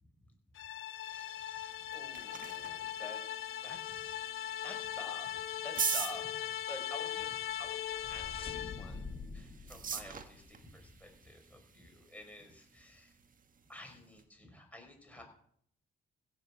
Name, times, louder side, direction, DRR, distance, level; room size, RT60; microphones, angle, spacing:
sound 1, 0.5-9.0, left 11 dB, 85° left, 0.9 m, -39 dB
voice 1, 1.0-13.2 13.7-15.2, left 1 dB, 5° left, 2 dB, 4.7 m, -51 dB
sound 2, 1.7-14.2, right 6 dB, 45° right, 1.4 m, -44 dB
sound 3, 7.5-11.1, left 3 dB, 25° left, 1.5 m, -47 dB
16.0 x 7.1 x 7.1 m, 0.65 s
cardioid pair, 90°, 20 cm